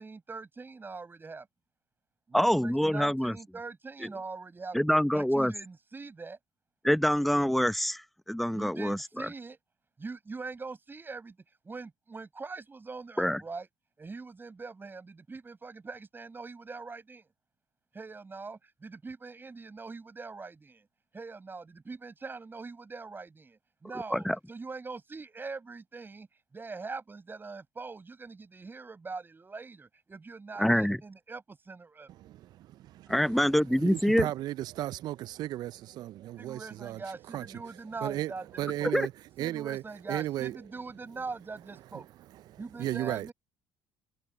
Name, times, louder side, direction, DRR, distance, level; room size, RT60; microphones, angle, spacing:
voice 1, 0.0-1.5 2.3-4.8 5.1-6.4 8.5-9.6 10.0-11.4 11.6-13.7 14.0-17.2 17.9-20.9 21.1-26.3 26.5-32.1 36.4-38.9 39.4-42.1 42.6-43.3, right 4 dB, 25° right, 7.6 m, -42 dB
voice 2, 2.3-3.4 4.7-5.5 6.8-9.3 13.2-13.4 24.1-24.4 30.6-31.0 33.1-34.3 38.9-39.1, equal, ahead, 1.1 m, -26 dB
voice 3, 32.1-33.4 33.8-39.8 40.1-40.6 41.9-43.3, right 14 dB, 55° right, 0.6 m, -36 dB
hypercardioid pair, 55°, 8 cm